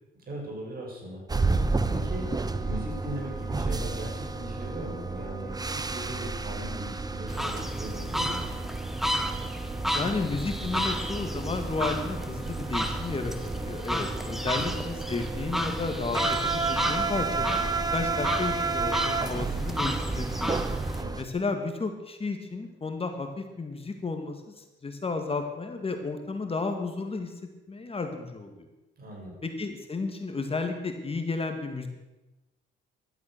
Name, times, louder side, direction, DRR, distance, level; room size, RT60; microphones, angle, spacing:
voice 1, 0.3-1.2 1.5-2.3 2.6-8.7 14.5-14.8 21.0-21.2 29.0-29.3, equal, 50° right, -1 dB, 7.3 m, -39 dB
sound 1, 1.3-21.2, right 3 dB, 20° right, 1.0 m, -31 dB
sound 2, 7.3-21.0, equal, ahead, 1.7 m, -33 dB
voice 2, 9.9-17.6 17.9-20.6 21.2-27.3 27.7-28.7 29.4-31.9, left 3 dB, 30° left, 5 dB, 2.1 m, -33 dB
15.5 x 12.5 x 6.8 m, 1.1 s
cardioid pair, 90°, 20 cm